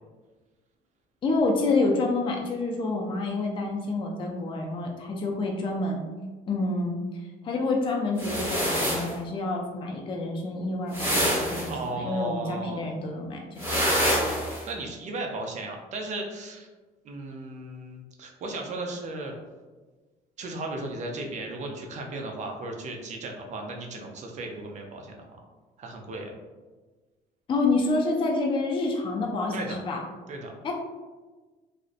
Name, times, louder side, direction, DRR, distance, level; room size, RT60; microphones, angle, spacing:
voice 1, 1.2-6.0 6.5-7.0 7.4-13.8 27.5-30.0 30.6-30.7, left 3 dB, 30° left, 0 dB, 0.4 m, -28 dB
sound 1, 8.2-9.1 10.9-11.7 13.6-14.6, equal, 15° right, 1.0 m, -26 dB
voice 2, 11.7-12.8 14.7-16.7 17.0-19.3 20.4-25.4 25.8-26.3 29.5-29.8 30.3-30.5, right 2 dB, 45° right, 2 dB, 0.5 m, -35 dB
2.5 x 2.0 x 2.4 m, 1.3 s
cardioid pair, 110°, 17 cm